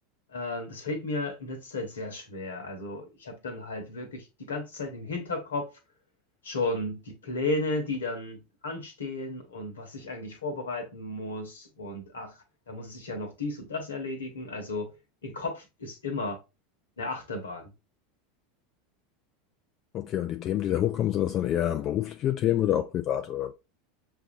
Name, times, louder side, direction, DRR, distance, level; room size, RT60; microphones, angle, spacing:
voice 1, 0.3-5.7 6.4-12.4 12.7-14.9 15.2-16.4 17.0-17.7, left 2 dB, 75° left, 1.2 m, -34 dB
voice 2, 19.9-23.5, left 12 dB, 40° left, 0.4 m, -27 dB
6.5 x 2.7 x 2.4 m
figure-of-eight pair, 80°, 0 cm